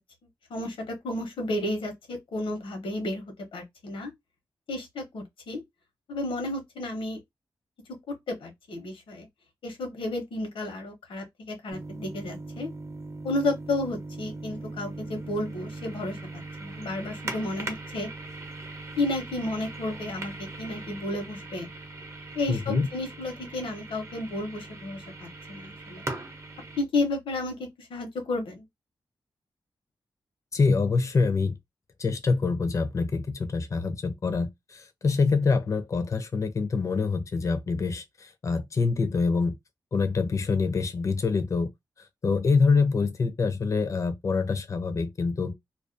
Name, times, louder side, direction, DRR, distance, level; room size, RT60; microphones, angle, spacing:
voice 1, 0.5-4.1 4.7-5.6 6.1-7.2 7.9-9.3 9.6-12.7 13.2-16.2 16.6-18.1 19.0-21.7 22.3-26.0 26.8-28.7, left 2 dB, 90° left, 0.9 m, -32 dB
sound 1, 11.7-26.8, right 2 dB, 35° right, 0.6 m, -40 dB
voice 2, 22.5-22.9 30.5-31.6 32.0-39.6 39.9-41.7 42.2-45.6, left 4 dB, 35° left, 0.4 m, -25 dB
2.4 x 2.2 x 2.5 m
wide cardioid pair, 165°, 9 cm